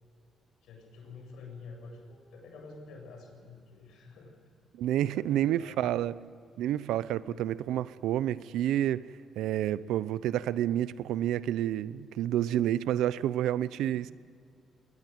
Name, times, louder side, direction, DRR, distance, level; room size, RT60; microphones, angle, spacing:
voice 1, 0.6-4.3 5.0-5.9 7.3-7.5 13.8-14.1, left 4 dB, 80° left, 3 dB, 7.8 m, -49 dB
voice 2, 4.8-6.1 6.6-9.0 9.4-14.1, right 12 dB, 85° right, 17 dB, 0.7 m, -29 dB
21.5 x 20.5 x 9.2 m, 2.3 s
cardioid pair, 90°, 0 cm